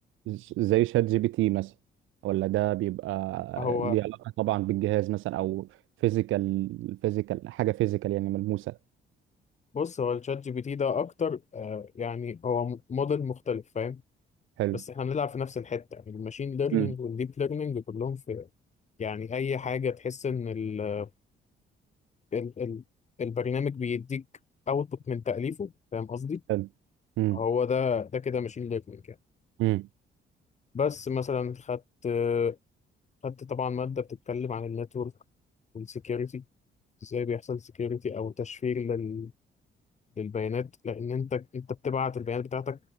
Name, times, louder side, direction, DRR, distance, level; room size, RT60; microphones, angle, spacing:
voice 1, 0.3-1.7 2.2-5.7 6.0-8.8 14.6-14.8 16.7-16.9 26.5-26.7 27.2-27.4 29.6-29.9, right 16 dB, 90° right, 0.9 m, -28 dB
voice 2, 3.6-4.0 9.7-14.0 14.7-18.5 19.0-21.1 22.3-22.8 23.2-24.2 24.7-26.4 27.3-29.2 30.7-32.6 33.2-35.1 35.7-36.4 37.0-39.3 40.2-42.8, left 6 dB, 35° left, 1.1 m, -31 dB
cardioid pair, 90°, 20 cm